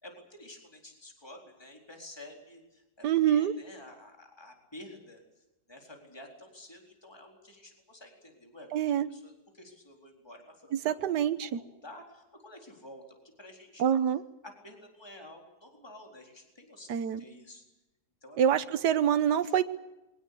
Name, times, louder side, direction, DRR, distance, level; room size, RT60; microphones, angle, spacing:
voice 1, 0.0-8.7 9.1-11.1 11.4-13.0 13.4-13.8 14.4-17.6 18.2-18.4 18.7-18.8 19.4-19.5, left 1 dB, 15° left, 2 dB, 4.2 m, -50 dB
voice 2, 3.0-3.5 8.7-9.1 10.7-11.6 13.8-14.2 16.9-17.2 18.4-19.6, right 9 dB, 80° right, 12 dB, 1.6 m, -26 dB
23.5 x 19.0 x 8.5 m, 0.99 s
omnidirectional pair, 1.8 m